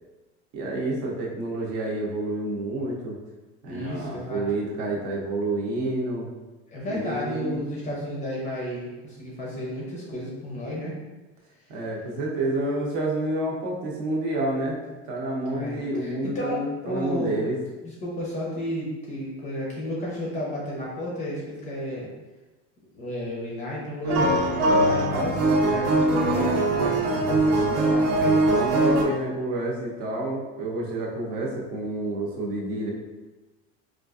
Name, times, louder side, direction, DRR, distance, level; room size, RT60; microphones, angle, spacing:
voice 1, 0.5-3.2 3.6-6.3 6.9-7.6 11.7-17.6 28.5-32.9, right 2 dB, 45° right, -2 dB, 0.8 m, -29 dB
voice 2, 3.7-4.4 6.7-11.0 15.5-17.5 17.8-22.1 22.9-28.4, left 1 dB, 20° left, -4 dB, 0.6 m, -32 dB
sound 1, 24.0-29.0, right 2 dB, 85° right, 0.9 m, -21 dB
4.3 x 2.4 x 2.4 m, 1.2 s
cardioid pair, 165°, 33 cm